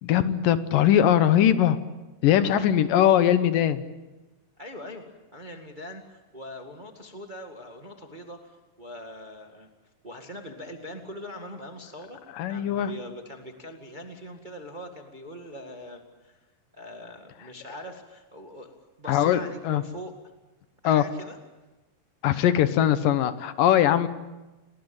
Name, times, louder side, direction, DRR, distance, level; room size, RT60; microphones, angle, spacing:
voice 1, 0.0-1.8 2.2-3.8 12.4-12.9 19.1-19.8 20.8-21.0 22.2-24.1, left 10 dB, 75° left, 12 dB, 2.7 m, -21 dB
voice 2, 4.6-5.1 5.3-9.7 10.0-12.2 12.5-16.4 16.7-18.7 19.0-20.1 20.8-21.4, left 1 dB, 20° right, 4 dB, 1.5 m, -42 dB
30.0 x 20.0 x 8.9 m, 1.1 s
omnidirectional pair, 4.0 m